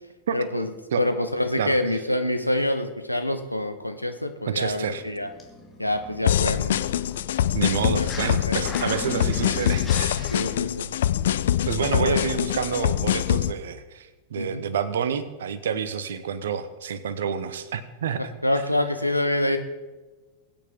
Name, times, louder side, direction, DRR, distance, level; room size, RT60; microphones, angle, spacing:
voice 1, 0.3-0.7 1.0-5.3 5.8-6.8 8.0-8.1 8.5-9.0 9.4-9.5 10.3-10.9 11.9-12.2 13.4-13.5 14.4-14.6 18.2-19.6, left 1 dB, 90° left, 7 dB, 1.0 m, -26 dB
sound 1, 4.5-8.3 8.6-10.4, left 4 dB, 15° left, 2.5 m, -39 dB
voice 2, 4.5-5.0 7.5-10.3 11.7-18.3, right 7 dB, 60° right, 14 dB, 1.0 m, -28 dB
sound 2, 6.2-13.5, left 11 dB, 60° left, 0.4 m, -24 dB
22.0 x 9.1 x 3.8 m, 1.2 s
figure-of-eight pair, 90°, 0 cm